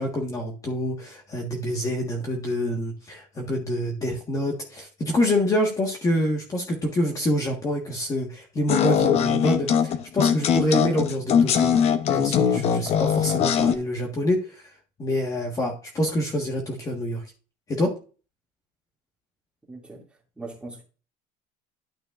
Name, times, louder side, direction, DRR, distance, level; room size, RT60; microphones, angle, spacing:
voice 1, 0.0-14.7 15.0-17.2 17.7-17.9, left 1 dB, 20° left, 1 dB, 1.6 m, -26 dB
sound 1, 8.7-13.8, left 8 dB, 45° left, 0.9 m, -21 dB
voice 2, 19.7-20.0 20.4-20.8, right 3 dB, 5° right, -2 dB, 2.6 m, -39 dB
12.0 x 6.0 x 2.6 m, 0.34 s
cardioid pair, 155°, 15 cm